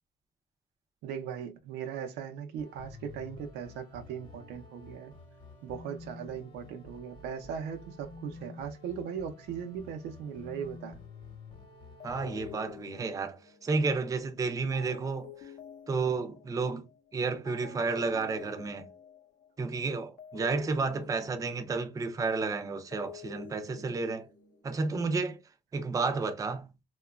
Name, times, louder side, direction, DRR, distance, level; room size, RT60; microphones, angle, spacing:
voice 1, 1.0-5.1 5.6-11.0, right 7 dB, 80° right, 0.6 m, -39 dB
sound 1, 2.6-12.6, left 3 dB, 25° left, 0.9 m, -49 dB
sound 2, 10.5-11.5 12.0-17.2 17.4-22.4 22.7-24.9, left 7 dB, 55° left, 0.7 m, -50 dB
voice 2, 12.0-15.3 15.9-16.9 17.1-18.9 19.6-24.3 24.6-25.4 25.7-26.7, right 4 dB, 20° right, 0.4 m, -31 dB
2.8 x 2.2 x 2.3 m
cardioid pair, 110°, 17 cm